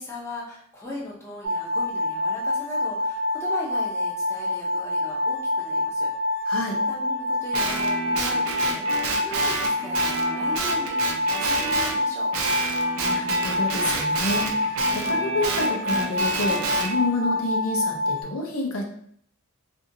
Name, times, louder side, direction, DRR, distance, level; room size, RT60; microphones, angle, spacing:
voice 1, 0.0-6.1 6.4-12.3, left 1 dB, 15° left, -4 dB, 0.6 m, -38 dB
sound 1, 1.4-18.2, left 2 dB, 40° right, 0.7 m, -26 dB
voice 2, 6.5-6.8 13.0-18.8, left 2 dB, 75° left, 0 dB, 0.6 m, -29 dB
Guitar, 7.5-12.0 12.3-16.9, right 3 dB, 75° right, 0.5 m, -29 dB
2.6 x 2.6 x 2.6 m, 0.63 s
head